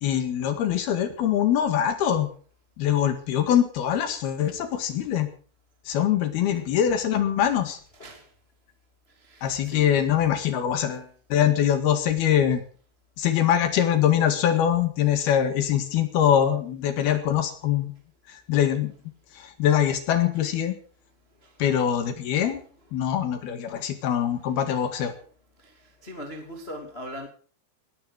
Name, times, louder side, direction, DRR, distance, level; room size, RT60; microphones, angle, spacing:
voice 1, 0.0-2.3 2.8-5.3 5.9-7.8 9.4-12.6 13.2-17.9 18.3-18.9 19.4-20.8 21.6-22.6 22.9-25.1, left 10 dB, 60° left, 9 dB, 3.4 m, -23 dB
voice 2, 7.9-8.3 9.2-9.9 21.4-21.5 25.6-25.8 26.0-27.3, equal, 20° left, 3 dB, 1.9 m, -40 dB
19.0 x 11.5 x 6.4 m, 0.42 s
omnidirectional pair, 5.7 m